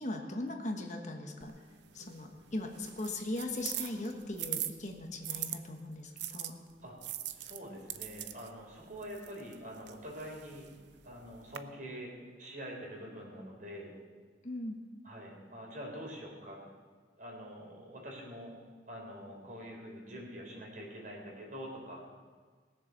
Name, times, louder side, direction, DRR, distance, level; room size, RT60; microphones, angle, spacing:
voice 1, 0.0-1.5 1.9-6.5 14.4-14.8, left 2 dB, 40° left, 2 dB, 1.3 m, -39 dB
sound 1, 1.4-5.6 6.2-11.6, right 12 dB, 85° right, 0.7 m, -43 dB
voice 2, 7.3-10.7 11.0-13.9 15.0-16.6 17.2-18.5 18.9-22.0, equal, 45° right, -1 dB, 3.9 m, -45 dB
20.0 x 7.3 x 6.7 m, 1.5 s
head